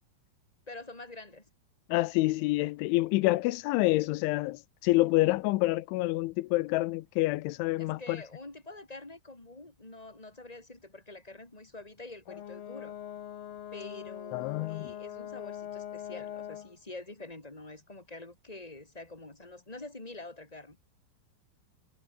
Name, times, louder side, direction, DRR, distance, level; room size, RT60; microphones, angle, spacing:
voice 1, 0.7-1.5 7.8-13.0 13.7-20.8, left 2 dB, 10° left, 3.5 m, -46 dB
voice 2, 1.9-8.2 14.3-14.9, left 20 dB, 85° left, 3.1 m, -27 dB
Brass instrument, 12.3-16.7, left 10 dB, 55° left, 3.2 m, -42 dB
omnidirectional pair, 5.4 m